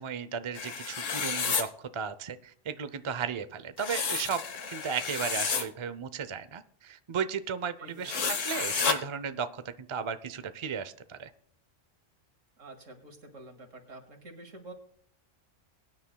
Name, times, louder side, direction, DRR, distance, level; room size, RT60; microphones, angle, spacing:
voice 1, 0.0-11.3, right 7 dB, 40° right, 13 dB, 0.4 m, -35 dB
sound 1, 0.6-1.6 3.8-5.7 8.0-9.0, left 5 dB, 75° left, 1.5 m, -31 dB
voice 2, 7.8-8.3 12.6-14.7, right 2 dB, 80° right, 4 dB, 2.6 m, -48 dB
22.5 x 10.0 x 2.2 m, 0.63 s
omnidirectional pair, 1.3 m